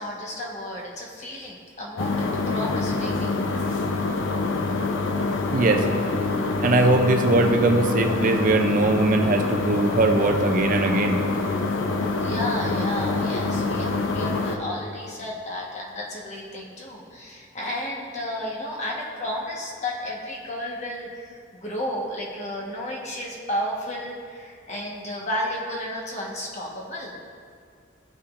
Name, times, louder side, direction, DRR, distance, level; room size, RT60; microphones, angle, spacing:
voice 1, 0.0-3.3 12.2-27.2, left 1 dB, 35° left, -2 dB, 1.3 m, -32 dB
sound 1, 2.0-14.6, left 3 dB, 85° left, 0.6 m, -25 dB
voice 2, 5.5-5.9 6.6-11.2, right 2 dB, 45° right, 4 dB, 0.5 m, -21 dB
14.5 x 5.6 x 2.5 m, 2.1 s
head